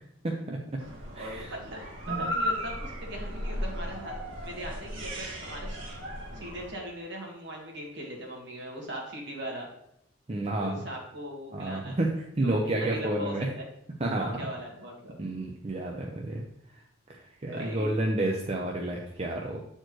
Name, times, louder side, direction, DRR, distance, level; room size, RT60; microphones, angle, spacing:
voice 1, 0.2-0.6 1.2-1.5 2.1-2.3 10.3-10.8 11.5-12.1 12.4-13.5 14.0-14.4 15.2-16.4 17.1-19.6, right 1 dB, 30° right, 0 dB, 0.6 m, -30 dB
sound 1, 0.8-6.7, equal, 90° right, 1.7 m, -35 dB
voice 2, 1.2-4.2 4.4-5.8 6.3-9.7 10.5-12.0 12.4-13.6 14.1-15.1 17.5-17.9, equal, 65° right, -1 dB, 1.8 m, -40 dB
7.8 x 4.4 x 3.1 m, 0.77 s
head